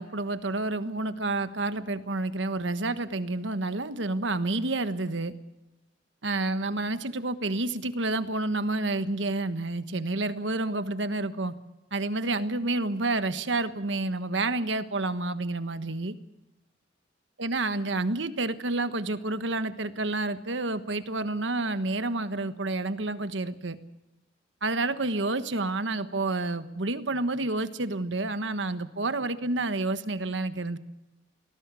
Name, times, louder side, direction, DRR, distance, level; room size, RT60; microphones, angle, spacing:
voice 1, 0.0-5.3 6.2-11.5 11.9-16.1 17.4-23.8 24.6-30.8, right 2 dB, 75° right, 11 dB, 1.4 m, -29 dB
21.0 x 17.5 x 8.4 m, 0.94 s
head